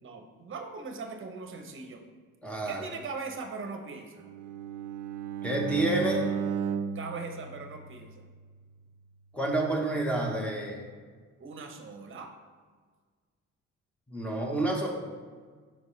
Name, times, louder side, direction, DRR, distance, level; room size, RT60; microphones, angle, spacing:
voice 1, 0.0-2.0 2.7-4.3 6.9-8.2 11.4-12.3, right 4 dB, 40° right, 5 dB, 0.9 m, -40 dB
voice 2, 2.4-2.8 5.4-6.2 9.3-10.8 14.1-14.9, right 1 dB, 5° left, -1 dB, 1.1 m, -29 dB
Bowed string instrument, 4.2-8.4, right 7 dB, 80° right, 0.5 m, -34 dB
6.2 x 4.8 x 3.2 m, 1.5 s
cardioid pair, 90°, 30 cm